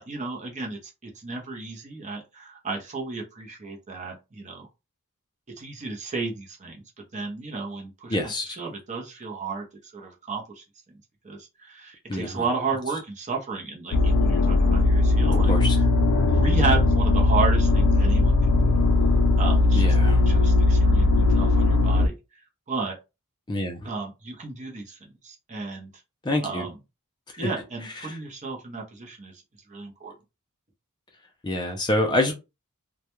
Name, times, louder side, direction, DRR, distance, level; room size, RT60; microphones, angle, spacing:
voice 1, 0.0-4.7 5.6-6.8 7.1-8.2 8.4-9.6 9.9-10.6 11.2-15.9 16.3-18.8 19.4-20.0 20.3-22.1 22.7-22.9 23.8-25.0 25.2-25.9 26.4-26.8 27.4-29.4 29.7-30.1, right 4 dB, 35° right, 1 dB, 0.7 m, -33 dB
voice 2, 8.1-8.6 12.1-12.4 15.5-15.8 19.8-20.2 23.5-23.8 26.2-26.6 27.4-27.5 28.0-28.2 31.4-32.3, left 1 dB, 20° left, 2 dB, 0.4 m, -26 dB
sound 1, 13.9-22.1, left 2 dB, 90° left, 0.5 m, -19 dB
2.3 x 2.1 x 2.9 m, 0.26 s
head